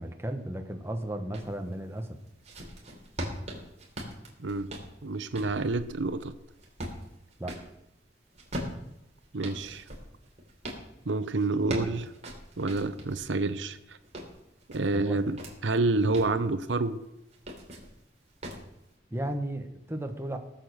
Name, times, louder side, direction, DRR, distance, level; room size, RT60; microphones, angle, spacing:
voice 1, 0.0-2.2 7.4-7.6 14.9-15.2 19.1-20.4, right 1 dB, 15° right, 5 dB, 1.2 m, -34 dB
sound 1, 1.3-1.5 2.1-7.7 8.3-10.8 11.4-13.2 13.7-15.5 16.0-16.4 17.3-17.9 18.4-18.7, equal, 40° right, 3.2 m, -40 dB
voice 2, 4.4-4.7 5.0-6.3 9.3-9.8 11.0-12.1 12.6-14.0 14.7-15.4 15.6-17.0, right 3 dB, 85° right, 12 dB, 0.8 m, -28 dB
18.0 x 7.4 x 6.4 m, 0.86 s
head